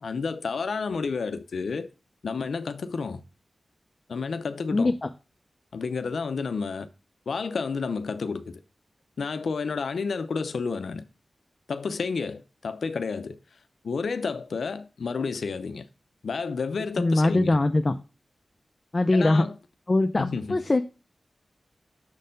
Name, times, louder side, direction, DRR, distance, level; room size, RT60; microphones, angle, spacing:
voice 1, 0.0-1.9 2.2-3.2 4.1-4.9 5.7-6.9 7.3-8.6 9.2-11.0 11.7-13.4 13.8-15.9 16.2-17.6 19.1-19.5 20.2-20.6, left 5 dB, 90° left, 0.5 m, -30 dB
voice 2, 4.7-5.1 17.0-18.0 18.9-19.4 19.9-20.8, left 2 dB, 40° left, 0.5 m, -22 dB
6.5 x 4.3 x 5.1 m
wide cardioid pair, 75°, 0 cm